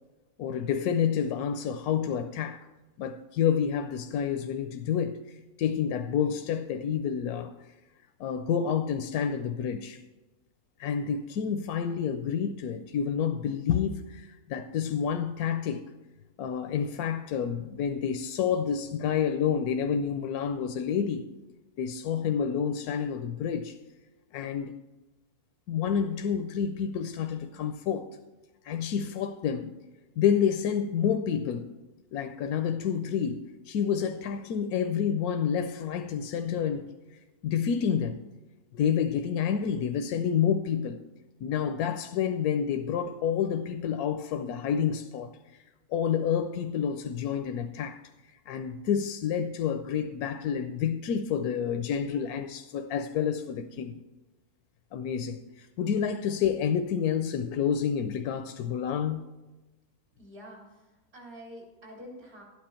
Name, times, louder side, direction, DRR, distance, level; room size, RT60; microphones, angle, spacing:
voice 1, 0.4-2.6 3.0-5.2 5.6-7.5 8.2-10.0 10.8-15.8 16.4-21.3 21.8-23.8 24.3-24.7 25.7-28.1 28.6-29.8 30.2-31.7 32.1-38.2 38.7-41.0 41.4-45.3 45.9-48.0 48.5-54.0 54.9-59.2, left 7 dB, 80° left, 1.1 m, -29 dB
voice 2, 60.2-62.4, equal, 70° right, 4.1 m, -47 dB
12.5 x 9.5 x 4.3 m
omnidirectional pair, 1.6 m